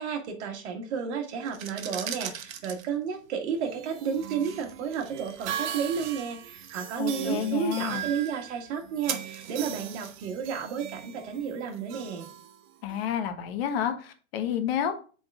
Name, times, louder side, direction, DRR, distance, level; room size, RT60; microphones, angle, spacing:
voice 1, 0.0-12.3, right 7 dB, 55° right, 3 dB, 1.7 m, -32 dB
sound 1, 1.4-12.2, right 9 dB, 80° right, 1.0 m, -43 dB
sound 2, 3.5-13.1, right 10 dB, 35° right, 0.5 m, -40 dB
voice 2, 7.0-8.1 12.8-14.9, left 9 dB, 45° left, 8 dB, 1.0 m, -30 dB
7.9 x 3.9 x 3.5 m, 0.38 s
hypercardioid pair, 150°, 40 cm